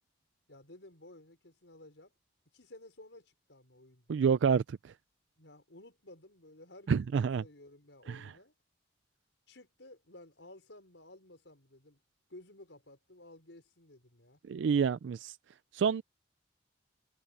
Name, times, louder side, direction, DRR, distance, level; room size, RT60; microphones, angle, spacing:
voice 1, 0.5-2.1 2.5-4.4 5.4-8.5 9.5-12.0 12.3-14.4, left 1 dB, 80° left, 5.1 m, -55 dB
voice 2, 4.1-4.8 6.9-7.4 8.1-8.3 14.5-15.3 15.7-16.0, right 6 dB, 80° right, 0.4 m, -28 dB
head